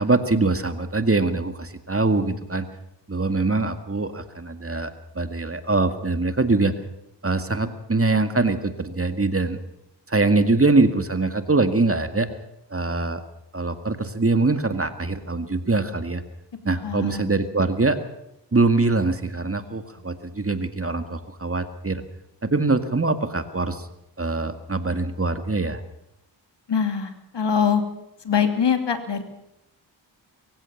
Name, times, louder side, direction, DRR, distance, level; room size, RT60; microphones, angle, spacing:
voice 1, 0.0-2.7 3.1-6.8 7.2-9.6 10.1-12.3 12.7-13.2 13.5-16.2 16.6-18.0 18.5-22.0 22.4-23.9 24.2-25.8, right 3 dB, 30° right, 9 dB, 2.0 m, -23 dB
voice 2, 16.8-17.3 26.7-27.8 28.2-29.2, left 7 dB, 75° left, 8 dB, 2.7 m, -23 dB
23.5 x 16.0 x 7.2 m, 0.83 s
cardioid pair, 55°, 43 cm